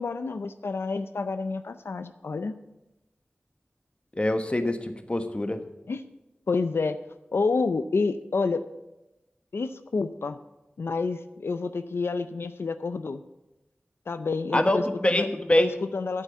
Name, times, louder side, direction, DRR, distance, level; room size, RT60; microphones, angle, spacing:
voice 1, 0.0-2.5 5.9-6.0 6.5-7.0 7.3-8.6 9.5-10.4 10.8-13.2 14.1-15.3 15.6-16.2, left 4 dB, 90° left, 11 dB, 0.5 m, -29 dB
voice 2, 4.2-5.6 14.5-15.7, left 1 dB, 30° left, 8 dB, 1.3 m, -24 dB
9.0 x 7.7 x 8.4 m, 0.98 s
wide cardioid pair, 60°, 4 cm